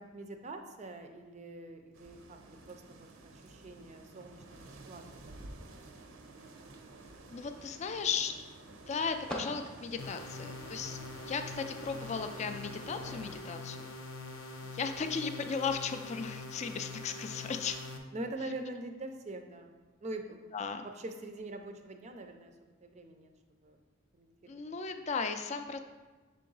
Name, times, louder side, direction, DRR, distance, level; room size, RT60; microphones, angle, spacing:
voice 1, 0.0-5.4 5.8-5.9 18.1-20.6 21.0-22.5 22.8-23.3 23.6-23.8 24.1-24.9, right 2 dB, 35° right, 5 dB, 0.4 m, -44 dB
sound 1, 1.9-13.4, right 2 dB, 90° right, 0.6 m, -52 dB
sound 2, 6.5-18.0, equal, 5° left, 0.7 m, -51 dB
voice 2, 7.3-8.4 8.7-11.0 11.2-13.9 14.6-17.8 20.5-20.9 24.5-25.8, left 5 dB, 35° left, 7 dB, 0.3 m, -36 dB
sound 3, 10.0-18.0, left 2 dB, 75° left, 0.6 m, -44 dB
6.6 x 3.8 x 3.9 m, 1.3 s
head